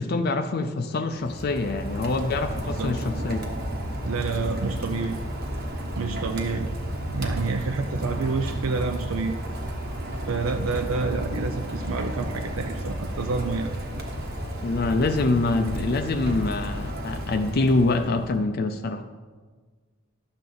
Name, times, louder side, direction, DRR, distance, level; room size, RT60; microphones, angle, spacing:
voice 1, 0.0-3.4 14.6-19.0, left 3 dB, 50° left, 7 dB, 0.4 m, -25 dB
Rain, 1.1-18.4, equal, 50° right, 1.3 m, -32 dB
voice 2, 4.0-5.2 6.0-6.7 7.1-9.3 10.3-13.7, right 4 dB, 75° right, 5 dB, 0.5 m, -28 dB
11.5 x 7.5 x 3.9 m, 1.4 s
head